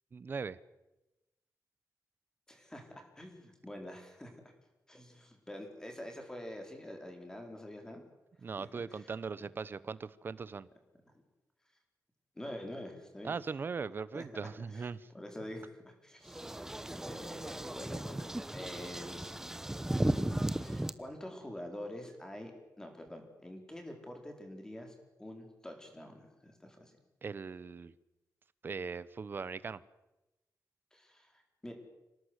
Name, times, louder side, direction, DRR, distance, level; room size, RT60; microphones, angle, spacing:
voice 1, 0.1-0.6 8.4-10.7 13.2-15.0 27.2-27.9 28.6-29.8, right 5 dB, 35° right, 17 dB, 0.9 m, -39 dB
voice 2, 2.5-4.3 4.9-8.0 8.6-9.1 11.0-11.1 12.3-13.4 14.1-14.2 14.7-14.9 15.1-16.7 16.9-19.5 19.8-22.5 22.8-26.9 30.9-31.7, left 1 dB, 10° left, 4 dB, 4.5 m, -46 dB
sound 1, 16.3-20.9, right 1 dB, 5° right, 0.9 m, -35 dB
26.5 x 18.5 x 8.1 m, 0.99 s
wide cardioid pair, 170°, 6 cm